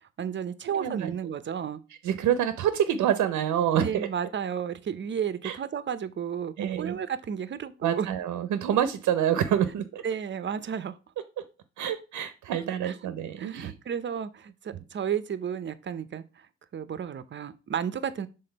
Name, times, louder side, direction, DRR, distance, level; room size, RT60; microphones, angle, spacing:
voice 1, 0.2-1.8 3.8-8.1 10.0-11.0 12.8-16.5 16.7-18.3, right 8 dB, 40° right, 0.7 m, -33 dB
voice 2, 0.8-1.1 2.0-4.1 5.4-5.6 6.6-7.0 7.8-10.0 11.8-13.7, right 10 dB, 75° right, 0.7 m, -27 dB
5.9 x 3.8 x 5.2 m
cardioid pair, 90°, 30 cm